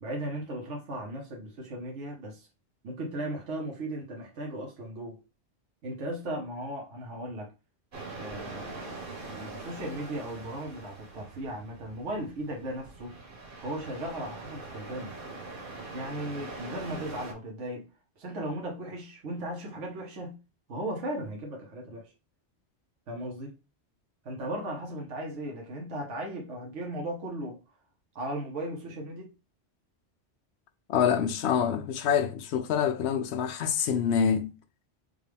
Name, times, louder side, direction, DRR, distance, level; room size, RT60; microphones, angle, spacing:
voice 1, 0.0-2.5 2.8-5.2 5.8-7.5 8.1-9.0 9.2-13.2 13.6-15.1 15.9-17.9 18.2-20.4 20.7-22.1 23.1-23.5 24.2-27.6 28.1-29.3, right 1 dB, 85° right, 1.2 m, -36 dB
sound 1, 7.9-17.3, right 3 dB, 50° right, 1.2 m, -43 dB
voice 2, 30.9-34.5, left 8 dB, 70° left, 0.8 m, -26 dB
5.1 x 2.3 x 3.3 m
omnidirectional pair, 1.2 m